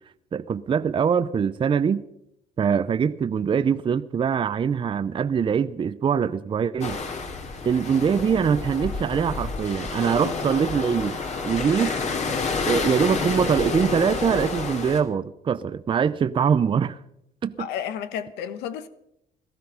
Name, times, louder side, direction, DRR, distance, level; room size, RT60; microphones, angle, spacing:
voice 1, 0.3-2.0 2.6-7.0 7.7-11.2 11.4-12.0 12.7-17.0 17.4-17.7, right 7 dB, 30° right, 0.5 m, -23 dB
sound 1, 6.8-15.0, left 4 dB, 45° left, 2.4 m, -29 dB
voice 2, 17.6-18.9, left 9 dB, 90° left, 1.0 m, -32 dB
18.0 x 13.0 x 5.6 m
cardioid pair, 110°, 17 cm